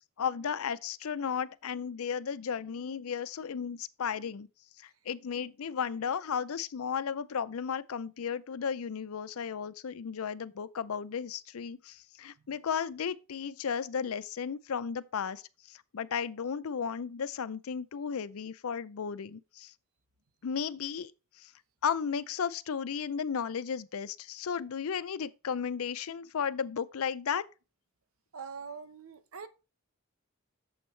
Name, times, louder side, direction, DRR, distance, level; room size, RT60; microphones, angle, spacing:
voice 1, 0.2-4.5 4.8-15.4 15.7-19.7 20.4-21.1 21.4-21.5 21.8-27.4, left 7 dB, 70° left, 0.5 m, -34 dB
voice 2, 28.3-29.5, right 5 dB, 70° right, 0.9 m, -44 dB
8.6 x 7.2 x 3.2 m
head